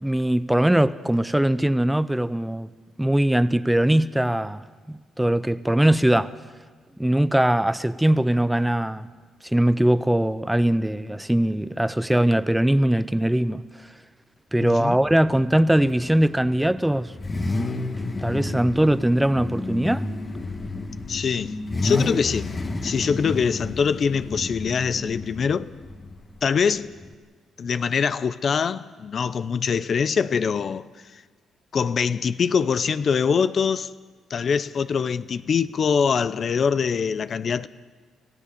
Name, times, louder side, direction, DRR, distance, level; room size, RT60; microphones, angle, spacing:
voice 1, 0.0-2.7 3.0-6.3 7.0-9.1 9.5-13.6 14.5-17.1 18.2-20.1, right 1 dB, 5° right, 0.6 m, -21 dB
voice 2, 14.6-15.0 21.1-21.5 21.8-22.5 22.8-25.7 26.4-26.9 27.6-30.8 31.7-33.9 34.3-37.7, left 6 dB, 50° left, 0.6 m, -23 dB
Car / Idling / Accelerating revving vroom, 15.1-27.1, left 2 dB, 30° left, 1.5 m, -31 dB
29.0 x 15.5 x 6.8 m
cardioid pair, 90°, 0 cm